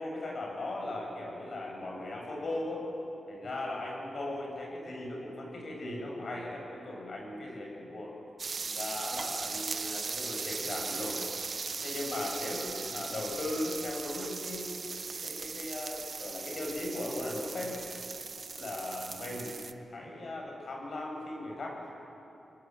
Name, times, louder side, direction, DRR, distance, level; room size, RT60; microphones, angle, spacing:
voice 1, 0.0-2.8 3.3-8.1 8.6-11.2 11.8-14.8 15.2-17.8 18.5-19.6 19.9-21.9, left 1 dB, 55° left, -1 dB, 6.9 m, -38 dB
sound 1, 8.4-19.7, right 4 dB, 50° right, 0.9 m, -38 dB
27.0 x 20.0 x 7.6 m, 2.9 s
wide cardioid pair, 95°, 0 cm